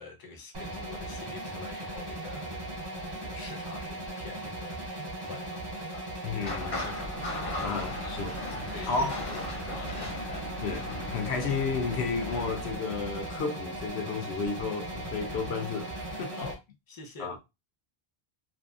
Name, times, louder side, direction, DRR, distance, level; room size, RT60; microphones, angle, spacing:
voice 1, 0.0-4.9 5.3-5.7 5.9-7.2 7.6-7.9 8.4-8.5 8.7-10.5 16.3-16.6 16.9-17.3, left 3 dB, 25° left, 0.5 m, -45 dB
sound 1, 0.5-16.5, right 1 dB, 35° right, 0.4 m, -38 dB
voice 2, 6.2-6.8 7.6-8.4 8.9-9.3 10.6-16.4 17.2-17.4, left 4 dB, 80° left, 0.8 m, -32 dB
sound 2, 6.4-12.8, left 1 dB, 45° left, 1.3 m, -38 dB
2.7 x 2.4 x 2.3 m
omnidirectional pair, 1.1 m